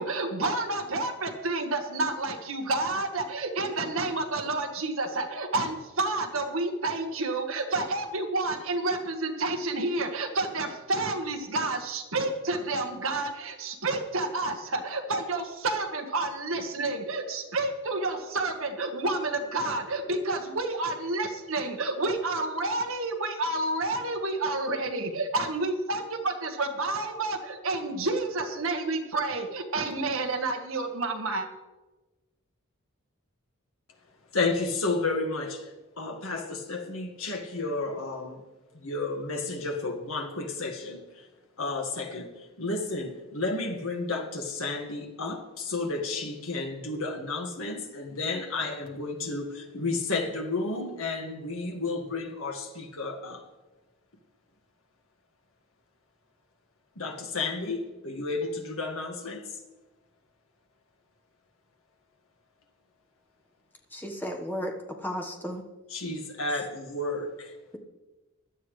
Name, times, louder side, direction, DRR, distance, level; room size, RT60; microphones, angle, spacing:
voice 1, 0.0-31.5, right 2 dB, 70° right, 1.6 m, -29 dB
voice 2, 34.3-38.4 38.7-41.3 41.6-53.4 57.0-59.6 65.9-67.5, left 3 dB, 75° left, 1.8 m, -32 dB
voice 3, 63.9-65.6, equal, 10° left, 1.3 m, -34 dB
16.5 x 12.0 x 3.3 m
head